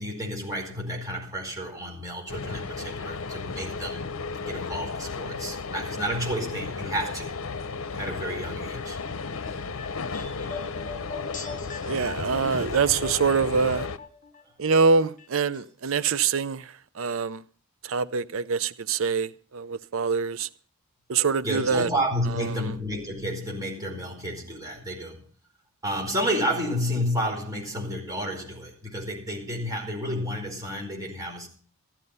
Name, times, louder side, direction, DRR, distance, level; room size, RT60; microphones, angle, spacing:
voice 1, 0.0-4.1 4.4-7.3 7.9-9.0 9.4-9.7 10.1-10.4 21.4-25.2 25.8-31.5, equal, 15° right, 4.7 m, -31 dB
sound 1, 2.3-14.0, left 4 dB, 70° left, 0.8 m, -34 dB
sound 2, 9.4-14.4 14.7-15.6 15.9-16.0, left 4 dB, 35° left, 2.0 m, -41 dB
voice 2, 11.8-13.9 14.6-17.4 17.8-20.5 21.1-21.9 22.5-22.7, right 5 dB, 65° right, 0.6 m, -25 dB
14.0 x 12.0 x 5.4 m
head